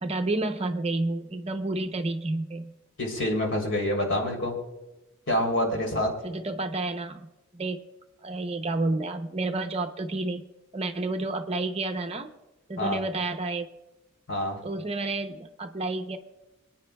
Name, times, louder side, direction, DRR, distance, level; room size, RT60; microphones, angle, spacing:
voice 1, 0.0-2.7 6.2-7.3 7.5-7.8 8.2-10.4 10.7-12.3 12.7-13.7 14.6-16.2, right 2 dB, 30° right, 6 dB, 0.6 m, -30 dB
voice 2, 3.0-4.5 5.3-6.1 12.8-13.0 14.3-14.6, left 1 dB, 60° left, 0 dB, 3.2 m, -26 dB
27.5 x 9.2 x 2.3 m, 1.0 s
head